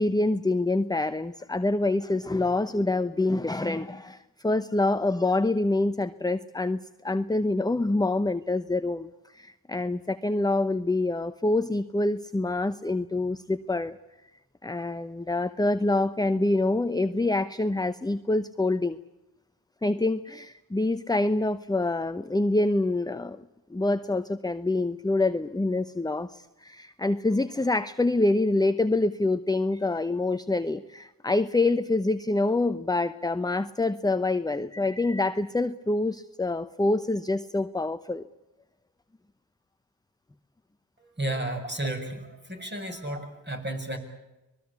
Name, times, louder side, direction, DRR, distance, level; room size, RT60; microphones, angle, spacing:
voice 1, 0.0-14.0 14.6-19.0 19.8-23.4 23.7-38.2, left 2 dB, 10° left, 12 dB, 0.9 m, -26 dB
voice 2, 41.0-44.0, right 1 dB, 25° right, 4 dB, 6.7 m, -33 dB
25.0 x 20.0 x 8.4 m, 1.0 s
supercardioid pair, 50°, 45 cm